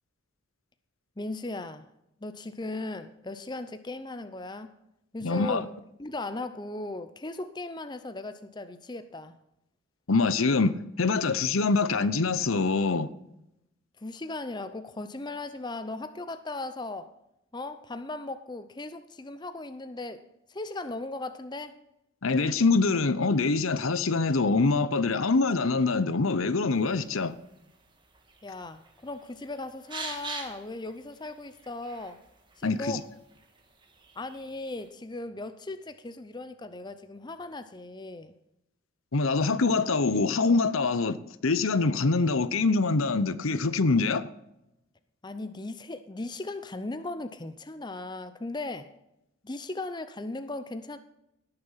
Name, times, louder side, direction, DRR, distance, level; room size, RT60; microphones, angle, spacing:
voice 1, 1.2-1.9 2.2-4.7 5.1-5.7 6.0-9.3 14.0-17.1 17.5-20.2 20.5-21.7 28.4-32.2 32.6-33.1 34.2-38.3 45.2-48.9 49.4-51.0, left 2 dB, 20° left, 0.6 m, -37 dB
voice 2, 5.2-5.6 10.1-13.1 22.2-27.3 32.6-33.0 39.1-41.2 41.4-44.2, left 3 dB, 80° left, 0.8 m, -24 dB
sound 1, 26.7-34.9, right 3 dB, 20° right, 1.7 m, -46 dB
18.0 x 6.8 x 5.7 m
head